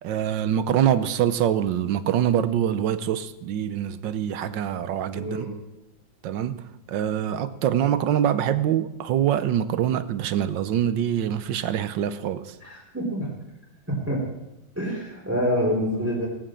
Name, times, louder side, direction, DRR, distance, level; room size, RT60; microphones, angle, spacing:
voice 1, 0.0-5.5 6.2-12.4, right 10 dB, 75° right, 1.4 m, -24 dB
voice 2, 5.1-5.5 12.6-13.3 13.9-14.2 14.7-16.3, equal, 5° right, 3.3 m, -26 dB
18.0 x 9.1 x 7.5 m
omnidirectional pair, 2.1 m